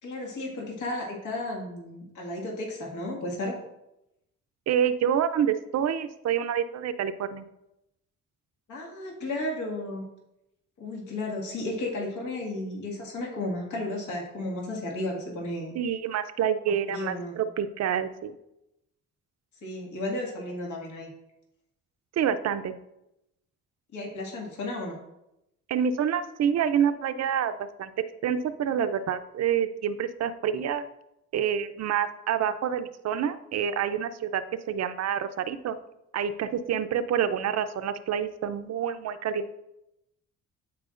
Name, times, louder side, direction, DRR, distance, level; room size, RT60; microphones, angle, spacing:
voice 1, 0.0-3.6 8.7-10.0 10.8-15.7 16.9-17.3 19.6-21.1 23.9-25.0, left 1 dB, 75° left, -2 dB, 2.0 m, -33 dB
voice 2, 4.7-7.4 15.7-18.4 22.2-22.7 25.7-27.9 28.2-30.8 31.3-34.4 34.7-35.8 36.1-39.6, right 8 dB, 60° right, 11 dB, 0.6 m, -27 dB
13.5 x 4.6 x 2.5 m, 0.86 s
cardioid pair, 90°, 30 cm